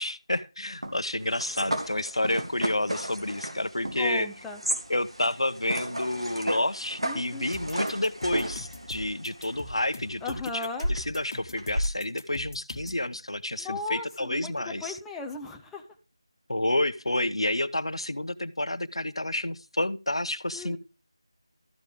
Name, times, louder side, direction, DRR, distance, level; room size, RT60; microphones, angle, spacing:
voice 1, 0.0-4.3 4.9-15.0 16.5-20.8, left 1 dB, 85° left, 15 dB, 0.8 m, -30 dB
sound 1, 0.8-10.1 10.8-11.9, right 1 dB, 90° right, 2.5 m, -34 dB
voice 2, 4.0-4.6 7.0-7.5 10.2-10.9 13.6-14.5 14.8-15.8 20.5-20.8, left 3 dB, 5° left, 1 dB, 0.4 m, -36 dB
sound 2, 7.5-13.0, left 2 dB, 35° left, 1.3 m, -42 dB
13.5 x 5.0 x 5.1 m, 0.31 s
figure-of-eight pair, 170°, 3 cm